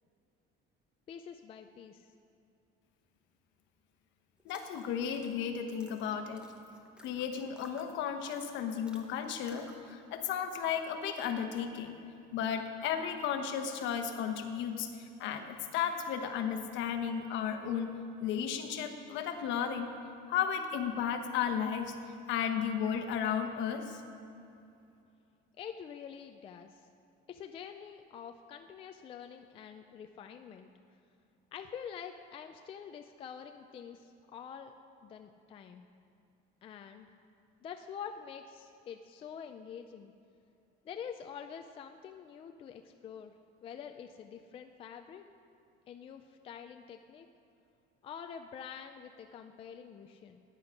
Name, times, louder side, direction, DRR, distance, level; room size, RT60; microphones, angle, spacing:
voice 1, 1.1-2.1 25.6-26.9 27.3-30.7 31.5-34.7 35.0-35.9 36.6-37.1 37.6-40.1 40.8-43.3 43.6-45.2 45.9-47.3 48.0-50.4, left 7 dB, 25° left, 6 dB, 0.4 m, -46 dB
voice 2, 4.4-6.4 7.0-12.0 12.3-19.9 20.3-21.9 22.3-24.0, left 8 dB, 60° left, 6 dB, 1.1 m, -34 dB
sound 1, 4.4-9.9, equal, 5° right, 0.8 m, -56 dB
15.5 x 9.8 x 5.1 m, 2.6 s
cardioid pair, 180°, 21 cm